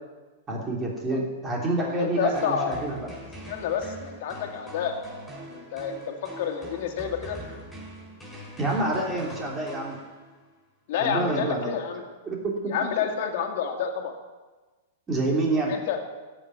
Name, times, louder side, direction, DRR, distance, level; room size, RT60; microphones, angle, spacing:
voice 1, 0.5-3.1 8.6-10.0 11.0-11.7 12.2-12.7 15.1-15.7, right 2 dB, 20° right, -2 dB, 3.3 m, -27 dB
voice 2, 1.8-2.8 3.5-4.9 5.5-7.4 10.9-12.0 12.7-14.1 15.5-16.0, left 7 dB, 60° left, 3 dB, 2.2 m, -29 dB
sound 1, 2.4-10.5, equal, 5° left, 5.7 m, -43 dB
13.5 x 6.4 x 9.4 m, 1.3 s
hypercardioid pair, 130°, 0 cm